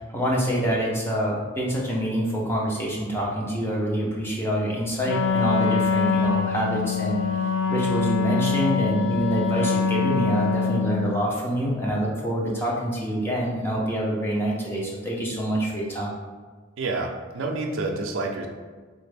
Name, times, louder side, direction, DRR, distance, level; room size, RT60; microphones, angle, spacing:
voice 1, 0.0-7.2 7.7-16.1, right 1 dB, 10° left, -4 dB, 0.6 m, -26 dB
Wind instrument woodwind instrument, 5.0-11.1, left 5 dB, 65° left, 0.3 m, -24 dB
voice 2, 16.8-18.5, right 3 dB, 70° right, 2 dB, 0.4 m, -28 dB
4.0 x 2.4 x 3.3 m, 1.4 s
head